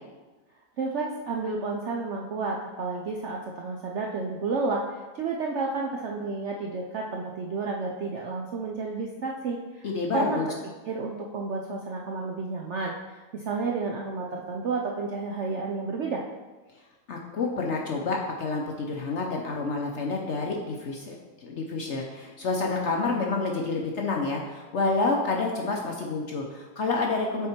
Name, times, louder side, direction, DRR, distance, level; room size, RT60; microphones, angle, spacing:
voice 1, 0.8-10.4 10.8-16.2, right 4 dB, 65° right, 0 dB, 0.7 m, -31 dB
voice 2, 9.8-10.5 17.1-27.5, left 3 dB, 60° left, 0 dB, 0.8 m, -28 dB
7.1 x 4.4 x 4.4 m, 1.3 s
omnidirectional pair, 1.8 m